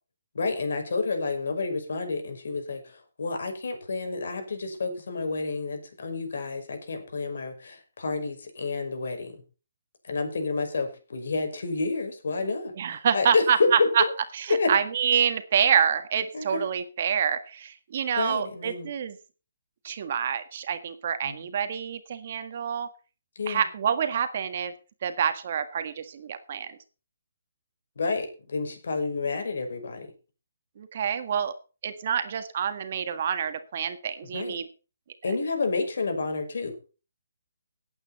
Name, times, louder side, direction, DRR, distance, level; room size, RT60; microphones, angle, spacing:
voice 1, 0.3-9.4 10.0-14.1 14.5-14.7 16.3-16.6 18.2-18.9 21.2-21.3 23.4-23.7 28.0-30.1 34.3-34.6 35.2-36.7, left 3 dB, 65° left, 5 dB, 5.7 m, -29 dB
voice 2, 12.8-14.0 14.3-19.2 19.8-22.9 23.5-24.7 25.0-26.8 30.8-31.5 31.8-34.7, right 8 dB, 40° right, 9 dB, 1.7 m, -27 dB
17.5 x 8.9 x 4.2 m, 0.34 s
hypercardioid pair, 170°, 0 cm